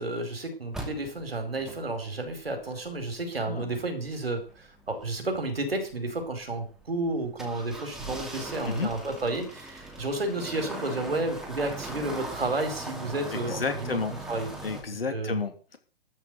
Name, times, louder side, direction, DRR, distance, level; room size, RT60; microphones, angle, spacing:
voice 1, 0.0-14.0 14.3-14.5 15.1-15.4, right 2 dB, 80° right, 6 dB, 4.9 m, -31 dB
sound 1, 0.7-14.8, right 1 dB, ahead, 2.5 m, -41 dB
voice 2, 13.5-14.1 14.6-15.8, left 4 dB, 75° left, 7 dB, 2.9 m, -31 dB
13.5 x 6.3 x 8.1 m, 0.38 s
figure-of-eight pair, 130°, 29 cm